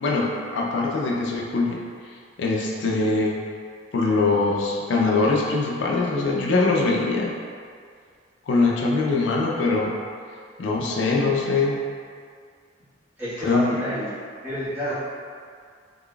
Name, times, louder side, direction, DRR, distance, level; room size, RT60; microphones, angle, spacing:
voice 1, 0.0-1.8 2.4-3.3 3.9-7.3 8.5-10.0 10.6-11.8 13.4-13.8, left 3 dB, 70° left, -2 dB, 0.4 m, -22 dB
voice 2, 13.2-14.1 14.4-14.9, equal, 10° right, -14 dB, 1.4 m, -29 dB
3.9 x 3.2 x 2.3 m, 2.1 s
head